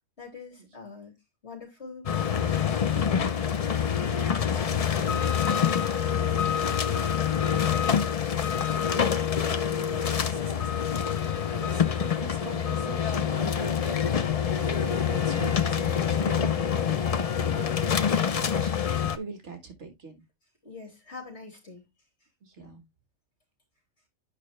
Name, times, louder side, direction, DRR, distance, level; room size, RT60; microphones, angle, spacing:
voice 1, 0.2-1.2 1.4-3.3 3.6-11.0 20.6-21.9, left 4 dB, 55° left, 3.5 m, -45 dB
sound 1, 2.1-19.2, left 8 dB, 70° left, 0.3 m, -26 dB
voice 2, 9.9-10.4 11.6-20.2 22.4-22.9, right 3 dB, 55° right, 1.7 m, -42 dB
8.4 x 5.4 x 3.1 m
omnidirectional pair, 1.4 m